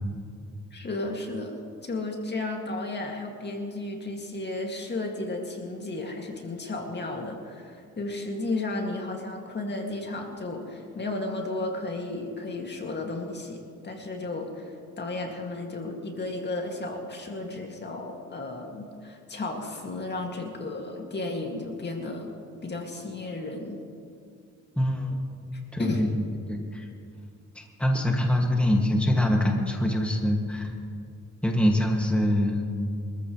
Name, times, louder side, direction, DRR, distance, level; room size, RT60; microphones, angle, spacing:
voice 1, 0.7-22.3 22.6-23.8 25.8-26.1, left 2 dB, 35° left, 1 dB, 2.3 m, -33 dB
voice 2, 24.8-25.2 25.7-26.9 27.6-30.7 31.4-32.7, left 1 dB, 5° left, 0 dB, 2.1 m, -24 dB
25.0 x 14.5 x 3.2 m, 2.3 s
cardioid pair, 90°, 30 cm